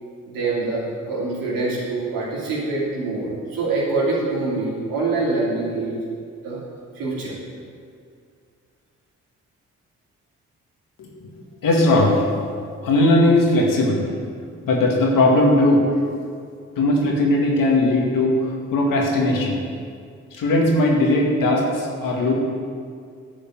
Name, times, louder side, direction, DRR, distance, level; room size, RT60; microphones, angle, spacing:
voice 1, 0.3-6.0 6.4-6.6 7.0-7.4, right 3 dB, 90° right, -6 dB, 2.9 m, -25 dB
voice 2, 11.0-12.2 12.8-14.0 14.6-15.9 16.8-18.4 18.7-19.6 20.3-22.3, left 1 dB, 80° left, -1 dB, 2.0 m, -18 dB
9.8 x 5.3 x 7.6 m, 2.2 s
supercardioid pair, 50°, 33 cm